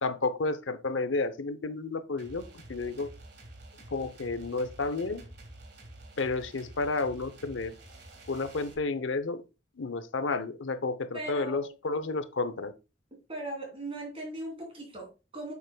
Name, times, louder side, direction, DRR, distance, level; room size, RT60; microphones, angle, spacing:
voice 1, 0.0-2.4 2.7-3.1 3.9-5.2 6.2-7.7 8.3-9.4 9.8-12.7, left 3 dB, 80° left, 0.8 m, -31 dB
sound 1, 2.2-8.7, right 1 dB, 60° right, 2.0 m, -49 dB
voice 2, 11.1-11.7 13.3-15.5, right 2 dB, 30° right, 3.2 m, -38 dB
8.0 x 7.2 x 2.3 m
head